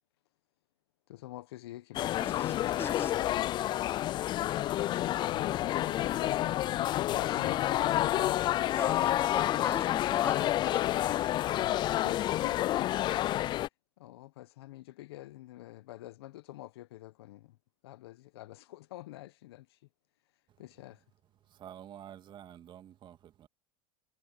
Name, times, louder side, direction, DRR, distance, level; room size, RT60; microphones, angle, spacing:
voice 1, 1.1-2.5 3.0-3.6 4.8-8.6 11.6-12.9 14.0-17.6 17.8-19.8 20.6-21.0, left 16 dB, 75° left, 1.2 m, -47 dB
sound 1, 1.9-13.7, left 14 dB, 35° left, 0.4 m, -29 dB
voice 2, 2.2-3.3 8.4-11.1, left 4 dB, 15° left, 1.1 m, -40 dB
voice 3, 21.4-23.5, right 10 dB, 35° right, 2.3 m, -49 dB
hypercardioid pair, 105°, 13 cm